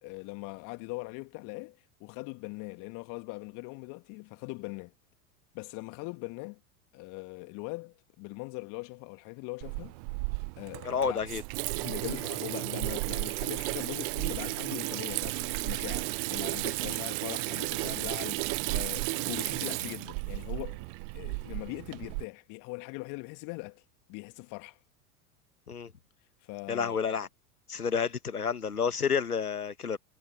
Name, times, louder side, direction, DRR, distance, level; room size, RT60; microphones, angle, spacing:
voice 1, 0.0-4.9 5.5-6.6 6.9-9.9 10.6-11.2 11.7-20.8 21.1-23.8 24.1-24.8 26.4-27.0, left 28 dB, 45° left, 1.9 m, -41 dB
Water tap faucet / Sink (filling or washing), 9.6-22.2, right 32 dB, 40° right, 0.5 m, -33 dB
voice 2, 10.8-11.4 25.7-25.9 26.7-27.3 27.7-30.0, left 6 dB, 85° left, 1.5 m, -30 dB
figure-of-eight pair, 85°, 44 cm